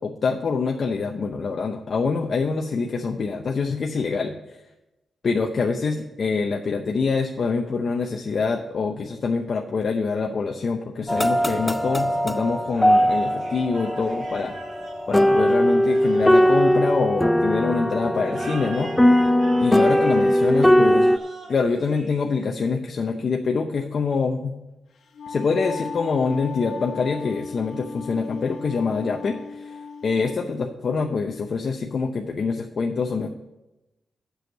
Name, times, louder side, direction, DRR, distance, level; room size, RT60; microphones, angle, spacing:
voice 1, 0.0-4.6 5.2-14.5 15.1-18.9 19.6-21.1 21.5-24.5 25.3-33.3, left 4 dB, 55° left, 2 dB, 0.8 m, -25 dB
sound 1, 11.1-21.2, equal, 10° left, 0.4 m, -20 dB
sound 2, 12.7-17.5 18.3-22.7, right 2 dB, 65° right, 2.9 m, -42 dB
Wind instrument woodwind instrument, 24.9-30.4, left 5 dB, 80° left, 1.3 m, -37 dB
8.0 x 6.4 x 7.8 m, 0.97 s
cardioid pair, 100°, 0 cm